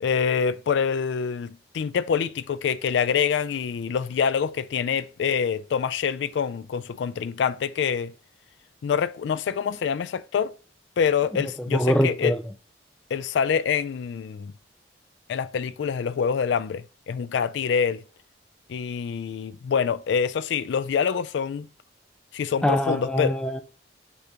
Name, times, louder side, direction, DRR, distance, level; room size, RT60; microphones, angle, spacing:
voice 1, 0.0-8.1 8.8-10.5 11.0-12.4 13.1-14.5 15.3-18.0 18.7-21.7 22.3-23.4, left 7 dB, 75° left, 0.3 m, -26 dB
voice 2, 11.7-12.4 22.6-23.6, equal, 5° left, 0.4 m, -23 dB
6.8 x 2.9 x 5.0 m
head